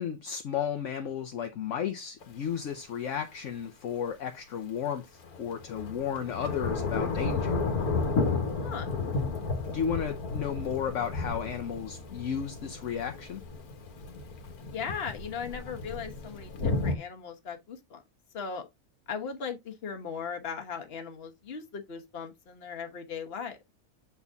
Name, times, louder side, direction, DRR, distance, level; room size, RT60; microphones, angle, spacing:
voice 1, 0.0-7.6 9.7-13.4, left 8 dB, 65° left, 1.0 m, -33 dB
Thunder / Rain, 2.2-2.3 5.2-17.0, left 4 dB, 90° left, 1.8 m, -32 dB
voice 2, 14.7-18.0 18.3-18.7 19.1-23.6, left 6 dB, 45° left, 1.3 m, -38 dB
7.1 x 4.1 x 3.5 m
omnidirectional pair, 1.5 m